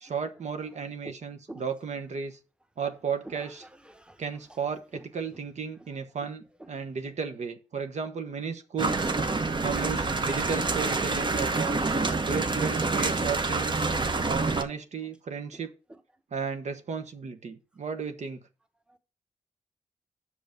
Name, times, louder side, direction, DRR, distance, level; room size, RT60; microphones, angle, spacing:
voice 1, 0.0-2.4 2.8-3.6 4.2-9.1 9.6-11.9 12.2-13.9 14.3-15.7 16.3-18.4, right 6 dB, 65° right, 1.1 m, -34 dB
voice 2, 3.2-4.2 4.5-4.6 4.9-5.0 5.3-5.4 6.2-6.3 6.6-7.1 8.8-8.9 15.5-15.6 15.9-16.0 18.9-19.0, right 1 dB, 5° right, 1.1 m, -47 dB
sound 1, 8.8-14.6, right 3 dB, 35° right, 0.9 m, -27 dB
6.7 x 5.1 x 5.2 m
cardioid pair, 60°, 13 cm